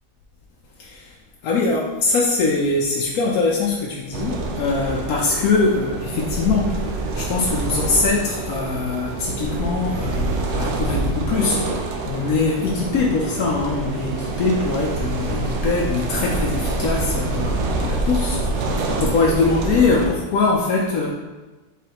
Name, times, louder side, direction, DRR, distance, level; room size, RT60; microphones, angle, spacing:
voice 1, 0.8-1.1 1.4-21.1, left 3 dB, 70° left, -2 dB, 1.0 m, -22 dB
sound 1, 4.1-20.1, right 2 dB, 65° right, 0.7 m, -26 dB
4.8 x 3.9 x 2.8 m, 1.2 s
omnidirectional pair, 1.7 m